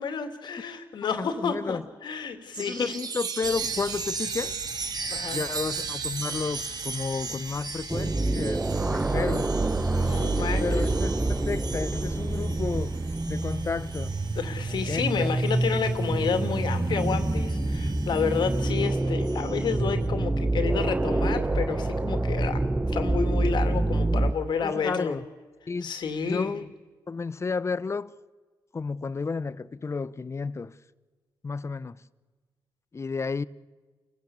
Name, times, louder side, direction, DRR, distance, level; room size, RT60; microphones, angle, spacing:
voice 1, 0.0-3.0 5.1-5.4 9.1-9.2 9.9-10.8 14.3-25.1 25.8-26.5, left 6 dB, 65° left, 2.5 m, -30 dB
voice 2, 1.2-1.8 2.6-4.6 5.3-8.6 8.9-9.5 10.3-13.0 13.3-14.2 14.9-15.3 24.6-25.2 25.7-25.9 26.3-26.7 27.1-28.1 28.7-30.8 31.4-32.0 32.9-33.4, left 4 dB, 35° left, 0.8 m, -32 dB
Chime, 2.5-16.5 17.0-19.8, right 4 dB, 55° right, 2.3 m, -37 dB
sound 1, 3.4-18.7, right 4 dB, 70° right, 2.8 m, -46 dB
sound 2, 7.9-24.3, right 2 dB, 20° right, 1.0 m, -27 dB
28.5 x 15.5 x 8.5 m
supercardioid pair, 60°, 8 cm